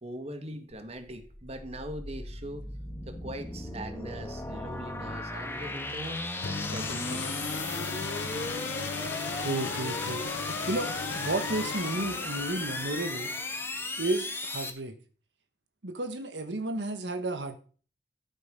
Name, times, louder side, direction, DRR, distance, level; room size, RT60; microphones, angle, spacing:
voice 1, 0.0-2.6 3.1-6.2 6.6-7.2, right 1 dB, 35° right, 7 dB, 1.8 m, -41 dB
sound 1, 0.7-14.7, left 2 dB, 15° left, 1.5 m, -36 dB
sound 2, 6.4-13.0, left 5 dB, 85° left, 0.6 m, -37 dB
voice 2, 9.4-10.3 10.7-13.3 14.0-14.9 15.8-17.6, right 2 dB, 85° right, 8 dB, 1.5 m, -32 dB
13.5 x 8.1 x 5.4 m, 0.40 s
head